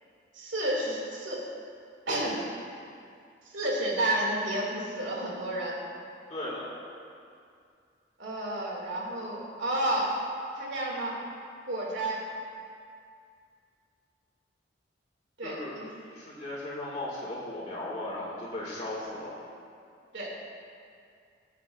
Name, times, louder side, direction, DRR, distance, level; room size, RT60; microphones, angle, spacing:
voice 1, 0.3-1.4 2.1-2.4 3.4-5.8 8.2-10.1 10.5-11.2 11.7-12.2 15.4-15.9 20.1-20.3, right 1 dB, 85° right, -3 dB, 2.8 m, -31 dB
voice 2, 6.3-6.7 15.4-15.7 16.1-19.4, left 1 dB, 35° left, -6 dB, 2.4 m, -36 dB
21.0 x 8.3 x 2.7 m, 2.3 s
head